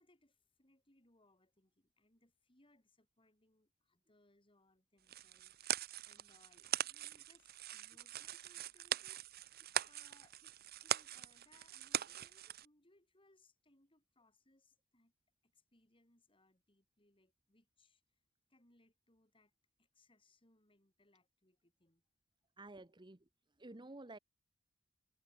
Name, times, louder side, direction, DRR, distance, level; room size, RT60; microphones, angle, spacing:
voice 1, 0.0-9.6 9.9-15.1 15.4-18.0 18.5-19.5 19.8-22.0, left 2 dB, 25° left, 6.7 m, -72 dB
sound 1, 5.1-12.7, right 11 dB, 50° right, 0.7 m, -41 dB
voice 2, 22.6-23.2 23.6-24.2, right 2 dB, 20° right, 1.1 m, -51 dB
head